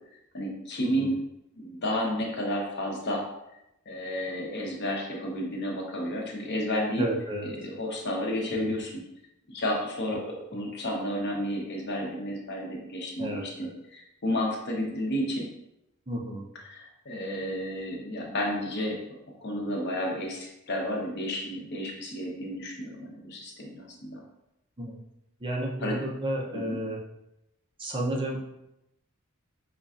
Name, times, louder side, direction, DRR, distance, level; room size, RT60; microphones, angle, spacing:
voice 1, 0.3-1.2 1.6-3.2 3.5-3.6 3.9-7.0 7.4-9.0 9.5-15.5 16.6-19.0 19.4-24.2 25.8-26.0 26.5-26.8, equal, 55° left, -1 dB, 0.8 m, -31 dB
voice 2, 7.0-7.7 8.6-8.7 10.4-10.5 13.2-13.7 16.1-16.4 24.8-25.0 25.4-27.0 27.8-28.4, right 1 dB, 25° right, -1 dB, 0.5 m, -32 dB
5.2 x 2.3 x 2.4 m, 0.86 s
head